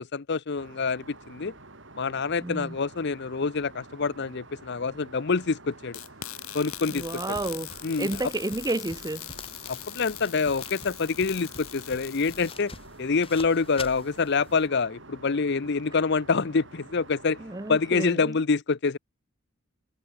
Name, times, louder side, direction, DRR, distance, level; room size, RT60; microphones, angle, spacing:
voice 1, 0.0-1.5 2.0-6.0 6.5-7.1 7.8-8.1 9.7-12.7 13.0-17.4 17.7-19.0, left 4 dB, 55° left, 0.7 m, -26 dB
Aircraft, 0.6-18.1, right 2 dB, 60° right, 5.6 m, -49 dB
voice 2, 2.4-2.8 6.9-9.3 17.4-18.3, right 2 dB, 20° right, 0.7 m, -31 dB
sound 1, 5.9-12.6, left 14 dB, 85° left, 1.5 m, -41 dB
sound 2, 6.7-14.7, left 3 dB, 25° left, 6.4 m, -46 dB
head